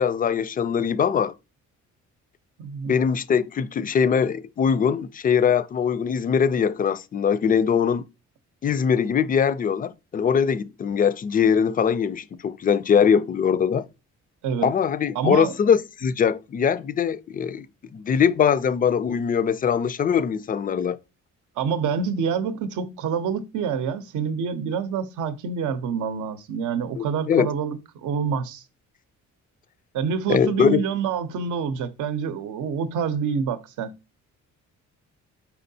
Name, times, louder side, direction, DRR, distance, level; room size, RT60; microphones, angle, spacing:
voice 1, 0.0-1.3 2.9-8.0 8.6-13.9 14.6-17.7 17.9-21.0 27.0-27.5 30.3-30.9, left 7 dB, 30° left, 0.3 m, -22 dB
voice 2, 2.6-3.0 14.4-14.7 15.1-15.5 21.6-28.6 29.9-34.0, right 6 dB, 80° right, 0.7 m, -27 dB
4.5 x 4.4 x 2.7 m
cardioid pair, 90°, 30 cm